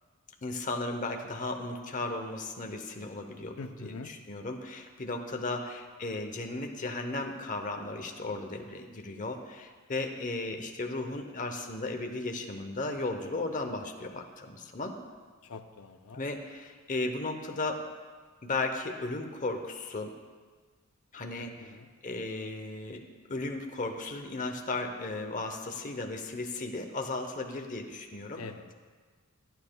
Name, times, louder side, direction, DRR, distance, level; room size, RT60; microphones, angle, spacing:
voice 1, 0.4-15.0 16.1-17.8 18.4-20.1 21.1-21.7 22.0-23.0 23.3-28.4, left 2 dB, 35° left, 4 dB, 0.8 m, -35 dB
voice 2, 3.6-4.1 15.4-16.2 21.4-21.9 28.4-28.7, left 4 dB, 80° left, 8 dB, 0.6 m, -44 dB
23.5 x 8.7 x 2.3 m, 1.5 s
head